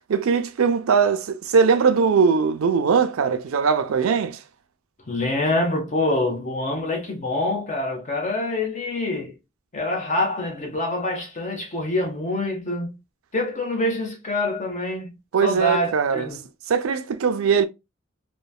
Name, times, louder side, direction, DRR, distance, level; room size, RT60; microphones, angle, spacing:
voice 1, 0.1-4.4 15.3-16.3 16.7-17.6, right 6 dB, 85° right, 0.4 m, -20 dB
voice 2, 5.1-9.3 9.7-13.0 13.3-15.1 15.4-16.4, left 2 dB, 35° left, 0.8 m, -25 dB
3.1 x 2.2 x 2.3 m
head